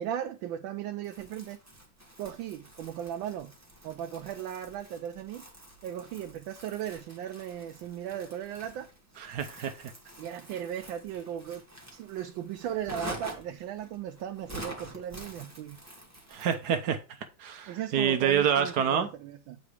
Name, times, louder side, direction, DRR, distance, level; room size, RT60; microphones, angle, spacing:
voice 1, 0.0-1.6 2.2-3.5 3.8-5.4 5.8-8.9 10.2-11.6 11.9-15.8 17.7-19.6, right 10 dB, 85° right, 1.4 m, -37 dB
Crumpling crinkling, 1.0-16.8, right 1 dB, 10° right, 1.6 m, -47 dB
voice 2, 9.3-9.9 16.3-17.0 17.4-19.1, right 8 dB, 65° right, 1.1 m, -27 dB
8.5 x 3.9 x 4.8 m
omnidirectional pair, 2.1 m